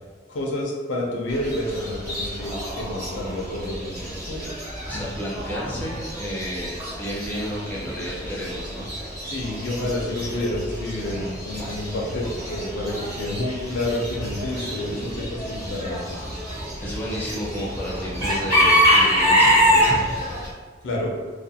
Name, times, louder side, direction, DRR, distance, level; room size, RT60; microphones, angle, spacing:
voice 1, 0.3-4.5 9.3-16.2 20.8-21.1, left 1 dB, 80° left, -1 dB, 0.5 m, -29 dB
Chicken rooster / Bird, 1.3-20.5, equal, 20° right, 0.9 m, -26 dB
voice 2, 4.9-8.9 16.8-20.1, equal, 10° left, -6 dB, 0.5 m, -31 dB
2.5 x 2.2 x 2.7 m, 1.5 s
head